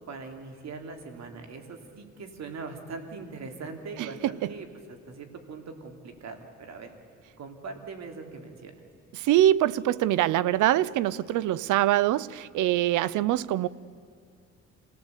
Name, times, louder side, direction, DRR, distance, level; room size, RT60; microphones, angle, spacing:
voice 1, 0.1-6.9 7.4-8.7, right 4 dB, 60° right, 5 dB, 3.3 m, -41 dB
voice 2, 4.0-4.5 9.1-13.7, right 13 dB, 85° right, 20 dB, 0.7 m, -24 dB
27.0 x 17.5 x 8.4 m, 2.4 s
cardioid pair, 90°, 30 cm